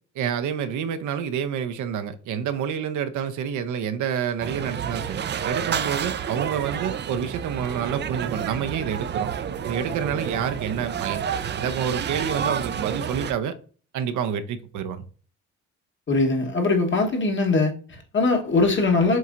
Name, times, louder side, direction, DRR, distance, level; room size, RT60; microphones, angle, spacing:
voice 1, 0.1-9.3 9.6-11.2 11.6-13.5 13.9-15.0, right 8 dB, 75° right, 0.7 m, -28 dB
sound 1, 4.4-13.3, right 8 dB, 35° right, 0.4 m, -29 dB
voice 2, 16.1-19.2, left 3 dB, 40° left, 1.2 m, -21 dB
7.5 x 2.8 x 2.5 m
cardioid pair, 90°, 30 cm